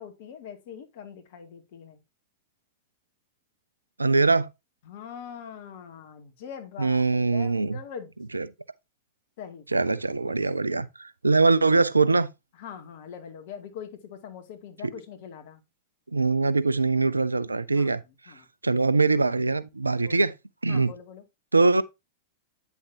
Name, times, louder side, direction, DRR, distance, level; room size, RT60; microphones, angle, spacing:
voice 1, 0.0-2.0 4.8-8.1 9.4-9.9 10.2-10.8 12.5-15.6 17.7-18.5 20.0-20.3 20.7-21.2, left 7 dB, 55° left, 2.5 m, -43 dB
voice 2, 4.0-4.5 6.8-7.8 8.3-8.5 9.7-12.3 16.1-18.0 18.6-20.3 20.6-20.9 21.5-21.8, right 3 dB, 85° right, 0.7 m, -22 dB
9.4 x 7.0 x 2.8 m
figure-of-eight pair, 95°, 0 cm